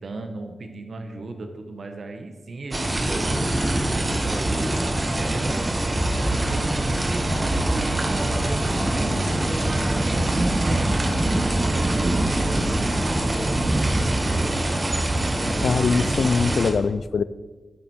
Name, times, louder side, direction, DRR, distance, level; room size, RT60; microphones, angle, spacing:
voice 1, 0.0-3.5 3.9-5.6 6.2-9.2 9.9-14.7, right 2 dB, 75° right, 6 dB, 1.2 m, -36 dB
sound 1, 2.7-16.7, right 1 dB, 35° right, 1.4 m, -23 dB
voice 2, 15.6-17.2, left 5 dB, 90° left, 16 dB, 0.3 m, -22 dB
11.0 x 8.1 x 4.4 m, 1.3 s
wide cardioid pair, 80°, 0 cm